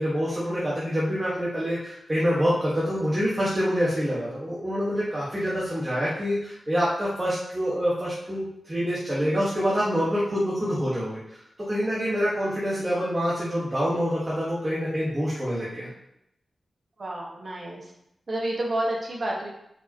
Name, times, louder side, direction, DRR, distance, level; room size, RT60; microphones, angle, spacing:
voice 1, 0.0-15.9, equal, 15° right, -9 dB, 1.7 m, -26 dB
voice 2, 17.0-17.9 18.3-19.5, right 1 dB, 45° right, -2 dB, 1.7 m, -30 dB
8.7 x 5.4 x 3.1 m, 0.80 s
wide cardioid pair, 150°, 0 cm